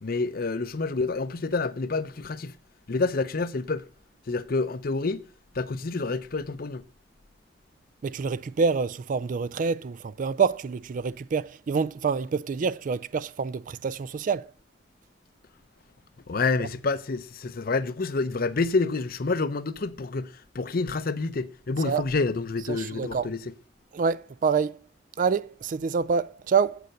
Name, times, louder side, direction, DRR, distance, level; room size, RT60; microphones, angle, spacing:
voice 1, 0.0-2.5 2.9-3.8 4.3-5.2 5.5-6.8 16.3-23.5, left 3 dB, 50° left, 0.6 m, -28 dB
voice 2, 8.0-14.5 21.8-22.0 22.7-23.3 23.9-24.8 25.2-26.8, right 5 dB, 45° right, 0.3 m, -27 dB
7.6 x 6.9 x 6.4 m
head